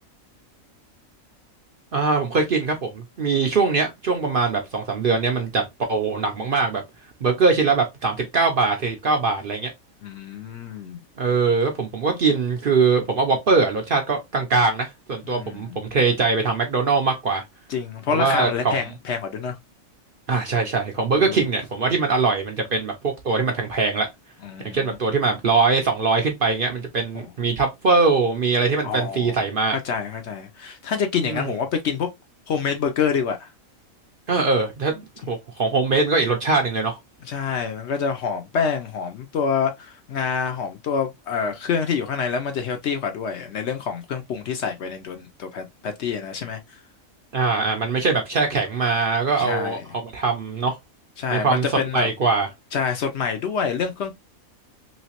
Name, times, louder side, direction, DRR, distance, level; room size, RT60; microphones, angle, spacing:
voice 1, 1.9-6.8 7.2-9.7 11.2-17.4 18.1-18.8 20.3-24.1 24.7-29.8 31.2-31.5 34.3-37.0 47.3-50.8 51.3-51.6 51.9-52.5, right 4 dB, 55° right, 0.6 m, -22 dB
voice 2, 10.0-11.0 15.2-15.8 17.7-19.6 21.2-21.4 24.4-25.0 27.1-27.3 28.8-29.4 29.7-32.1 32.5-33.5 37.3-46.8 49.4-49.9 51.2-52.1 52.7-54.2, left 6 dB, 65° left, 0.8 m, -27 dB
3.1 x 2.9 x 2.8 m
omnidirectional pair, 1.4 m